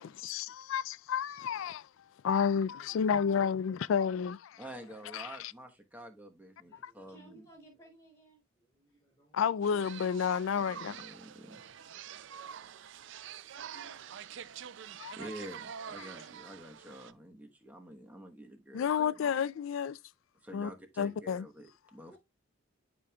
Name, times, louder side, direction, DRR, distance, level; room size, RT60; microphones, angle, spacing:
voice 1, 0.0-1.8 2.2-4.6 5.1-5.5 6.8-6.9 9.3-11.0 15.0-15.1 18.7-20.0 20.5-20.7 21.0-21.4, left 7 dB, 70° left, 0.3 m, -31 dB
voice 2, 2.5-3.5 4.5-5.4 6.6-9.8 12.3-13.0 13.5-14.4 22.0-22.2, right 1 dB, 20° left, 3.0 m, -62 dB
voice 3, 4.6-7.4 10.5-11.6 15.1-19.3 20.4-22.2, right 1 dB, 10° right, 1.1 m, -48 dB
sound 1, 9.6-17.1, right 8 dB, 60° right, 0.4 m, -46 dB
11.5 x 5.1 x 2.3 m
head